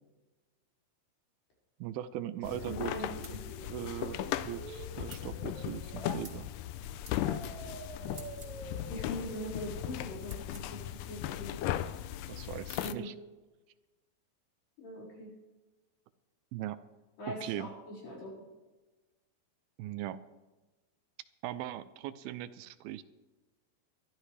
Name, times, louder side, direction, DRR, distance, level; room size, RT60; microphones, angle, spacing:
voice 1, 1.8-3.4 3.7-6.5 12.3-13.1 16.5-16.8 17.3-17.7 19.8-20.2 21.4-23.0, right 12 dB, 80° right, 13 dB, 2.4 m, -40 dB
sound 1, 2.4-12.9, left 12 dB, 85° left, 1.9 m, -37 dB
voice 2, 2.6-3.4 8.9-11.5 12.8-13.1 14.8-15.3 17.2-18.3, left 1 dB, 65° left, -4 dB, 6.8 m, -42 dB
sound 2, 3.2-3.4 5.1-5.3 6.2-6.4 7.0-7.2 8.1-8.6 10.2-10.7, right 3 dB, 45° right, 0.7 m, -51 dB
sound 3, 3.4-6.2 7.2-10.2, right 5 dB, 65° right, 1.5 m, -48 dB
22.0 x 13.5 x 3.3 m, 1.2 s
omnidirectional pair, 4.4 m